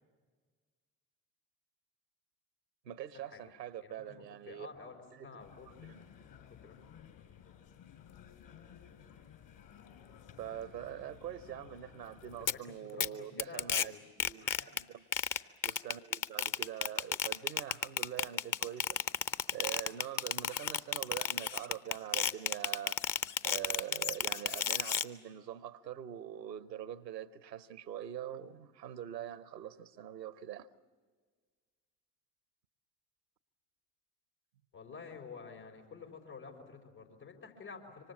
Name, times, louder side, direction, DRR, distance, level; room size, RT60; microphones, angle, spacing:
voice 1, 2.8-4.7 5.1-5.3 5.8-6.0 10.4-13.9 14.3-15.0 15.6-19.0 19.5-23.2 23.4-30.7, right 10 dB, 90° right, 0.7 m, -44 dB
voice 2, 3.8-5.7 6.6-6.8 12.4-14.0 14.4-14.9 34.7-38.1, left 5 dB, 80° left, 4.6 m, -50 dB
sound 1, 5.4-12.6, left 8 dB, 60° left, 4.4 m, -56 dB
sound 2, 12.5-12.6 13.0-13.1 13.4-13.8 14.2-14.8 15.1-25.0, left 8 dB, 40° left, 0.9 m, -32 dB
26.5 x 25.0 x 7.1 m
figure-of-eight pair, 45°, 48 cm